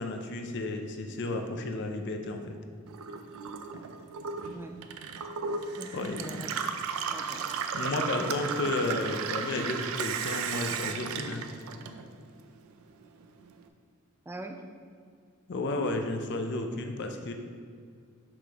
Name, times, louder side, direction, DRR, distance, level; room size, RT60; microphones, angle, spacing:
voice 1, 0.0-2.6 5.9-6.5 7.7-11.5 15.5-17.3, left 2 dB, 50° left, 5 dB, 0.5 m, -32 dB
Gurgling / Water tap faucet / Sink (filling or washing), 2.9-12.4 12.7-13.6, right 6 dB, 80° right, 0.4 m, -35 dB
voice 2, 4.5-4.8 5.8-6.5 7.1-7.5 8.2-8.3 8.6-9.0 14.3-14.6, right 2 dB, 10° right, 3 dB, 0.4 m, -43 dB
5.9 x 4.9 x 3.5 m, 2.1 s
head